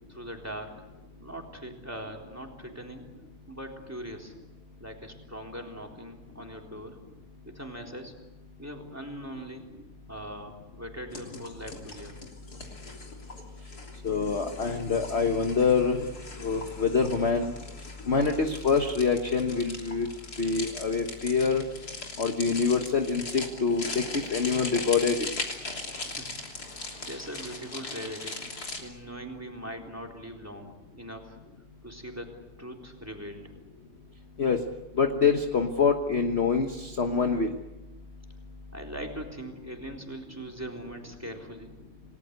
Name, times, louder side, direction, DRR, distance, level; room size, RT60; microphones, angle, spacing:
voice 1, 0.1-0.8 1.2-3.1 3.5-4.3 4.8-7.0 7.5-8.1 8.6-9.6 10.1-12.2 25.9-26.3 26.5-28.4 28.8-31.4 31.8-33.5 38.7-41.7, equal, 10° right, 1 dB, 3.6 m, -41 dB
sound 1, 11.1-28.8, left 3 dB, 55° left, 3.7 m, -40 dB
voice 2, 14.0-16.1 16.4-17.5 18.1-20.1 20.4-21.6 22.2-25.3 34.4-34.6 35.0-37.6, left 5 dB, 40° left, 5 dB, 1.4 m, -25 dB
29.0 x 19.5 x 8.1 m, 1.1 s
omnidirectional pair, 2.0 m